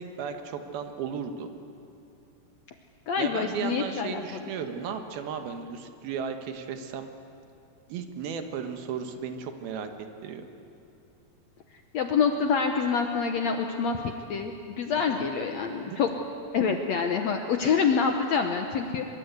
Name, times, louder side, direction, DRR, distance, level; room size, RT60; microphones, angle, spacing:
voice 1, 0.0-1.5 3.2-7.1 7.9-9.9 10.2-10.4 15.1-15.2 15.8-16.1, right 7 dB, 80° right, 6 dB, 3.2 m, -35 dB
voice 2, 3.1-4.4 11.9-16.1 16.5-19.1, left 6 dB, 70° left, 4 dB, 1.7 m, -26 dB
23.5 x 22.5 x 8.2 m, 2.7 s
omnidirectional pair, 4.3 m